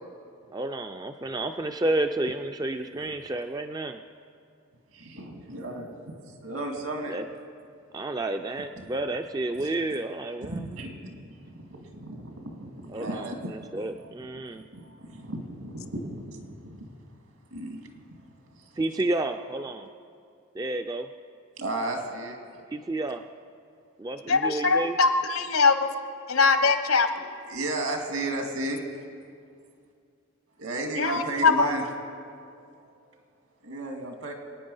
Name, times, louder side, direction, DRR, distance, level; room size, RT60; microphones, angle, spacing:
voice 1, 0.5-4.0 7.1-7.2 7.9-10.5 12.9-13.3 13.7-14.6 18.8-19.9 20.6-21.1 22.7-23.2 24.0-24.9, right 2 dB, 15° right, 6 dB, 0.3 m, -30 dB
voice 2, 4.9-5.9 6.4-7.2 8.7-9.2 9.6-9.7 10.4-14.4 14.7-16.9 17.5-17.9 18.5-18.8 21.6-22.4 27.1-28.8 30.6-31.8 32.1-32.9 33.6-34.3, right 2 dB, 75° right, 3 dB, 2.2 m, -34 dB
voice 3, 24.3-25.8 26.3-27.1 31.0-31.7, left 4 dB, 75° left, 8 dB, 1.1 m, -22 dB
25.5 x 9.5 x 5.5 m, 2.3 s
head